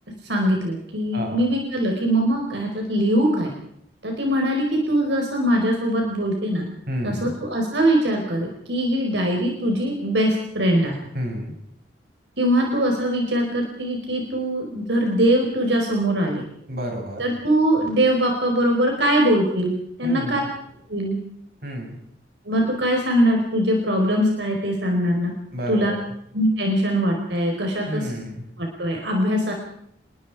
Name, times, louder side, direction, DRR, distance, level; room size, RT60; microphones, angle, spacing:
voice 1, 0.3-3.5 4.0-6.7 7.0-11.0 12.4-16.4 17.2-20.4 20.9-21.2 22.5-25.3 25.7-25.9 26.3-28.1 28.6-29.5, equal, 75° right, 1 dB, 4.8 m, -22 dB
voice 2, 1.1-1.5 6.9-7.3 11.1-11.6 16.7-17.2 20.0-20.5 21.6-22.0 25.5-26.0 27.8-28.5, equal, 55° right, 2 dB, 7.2 m, -30 dB
28.0 x 22.0 x 4.9 m, 0.71 s
head